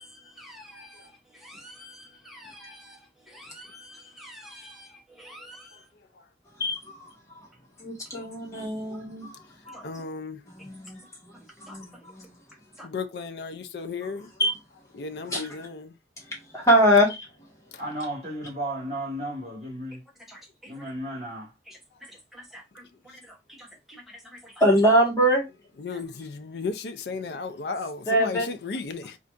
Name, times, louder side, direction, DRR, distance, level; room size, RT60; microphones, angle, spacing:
voice 1, 0.0-5.9 9.7-9.9 11.3-12.1 12.8-12.9 20.3-20.8 21.7-24.6 25.9-26.0, equal, ahead, 0.8 m, -48 dB
voice 2, 6.6-7.5 7.8-9.8 10.5-12.3 14.4-14.5 15.3-15.7 16.2-17.5 24.6-25.4 28.1-28.5, equal, 20° left, 1.3 m, -24 dB
voice 3, 9.7-10.4 12.8-14.3 14.9-16.0 17.7-17.8 25.8-29.2, left 4 dB, 70° left, 0.5 m, -35 dB
voice 4, 17.8-20.0 20.7-21.5, right 1 dB, 35° right, 1.8 m, -34 dB
4.4 x 2.5 x 2.5 m
head